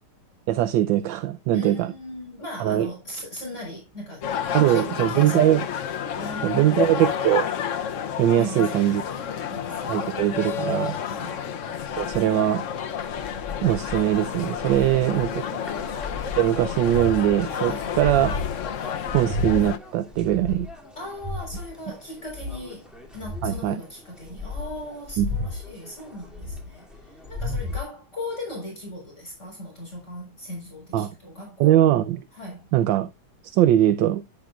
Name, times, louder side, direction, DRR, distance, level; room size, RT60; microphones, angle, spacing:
voice 1, 0.5-1.9 2.6-2.9 4.5-5.6 6.4-7.5 8.2-9.0 9.9-11.0 12.0-12.6 13.6-15.4 16.4-18.4 19.1-20.7 23.4-23.8 25.2-25.3 30.9-31.1 31.6-32.2 32.7-33.1 33.4-34.2, right 12 dB, 70° right, 1.3 m, -21 dB
voice 2, 1.5-5.6 6.1-6.9 8.3-10.1 11.0-11.5 14.7-15.9 17.6-18.0 20.9-22.9 23.1-31.9 32.3-32.7, left 1 dB, 35° left, 4.7 m, -38 dB
sound 1, 4.2-19.8, left 8 dB, 65° left, 0.7 m, -30 dB
sound 2, 9.7-27.8, left 3 dB, ahead, 2.5 m, -35 dB
10.5 x 9.7 x 2.4 m
omnidirectional pair, 2.3 m